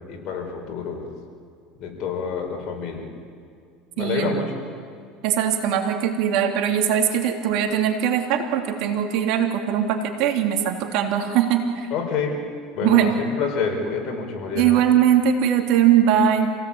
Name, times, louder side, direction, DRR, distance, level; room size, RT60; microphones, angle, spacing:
voice 1, 0.1-1.1 1.8-3.1 4.0-4.6 11.9-12.4 12.7-14.8, left 5 dB, 50° left, 2 dB, 5.0 m, -28 dB
voice 2, 4.0-4.4 5.2-11.9 12.8-13.1 14.5-16.6, right 9 dB, 65° right, 4 dB, 3.0 m, -20 dB
27.0 x 17.5 x 8.8 m, 2.3 s
supercardioid pair, 125°, 0 cm